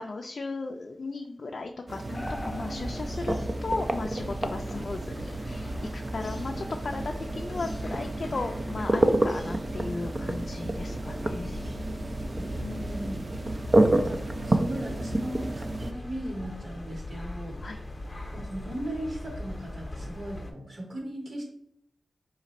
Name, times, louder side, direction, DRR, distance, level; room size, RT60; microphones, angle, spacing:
voice 1, 0.0-3.3 3.6-12.0 17.6-17.8, left 3 dB, 60° left, 3 dB, 0.3 m, -36 dB
sound 1, 1.9-15.9, right 1 dB, 35° right, 0.4 m, -29 dB
sound 2, 2.1-20.5, left 1 dB, 25° left, 0.7 m, -40 dB
voice 2, 12.2-13.2 13.9-17.6 18.3-21.4, equal, 65° right, 0 dB, 1.4 m, -37 dB
4.0 x 2.5 x 4.1 m, 0.72 s
wide cardioid pair, 105°, 0 cm